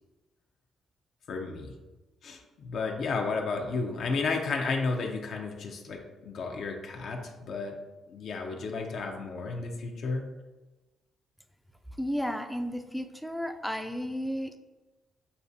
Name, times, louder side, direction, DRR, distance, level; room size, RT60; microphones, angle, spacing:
voice 1, 1.3-1.7 2.2-7.8 8.1-10.2, left 4 dB, 65° left, 2 dB, 0.6 m, -32 dB
voice 2, 12.0-14.6, equal, ahead, 5 dB, 0.4 m, -33 dB
6.7 x 2.4 x 2.6 m, 1.1 s
cardioid pair, 95°, 0 cm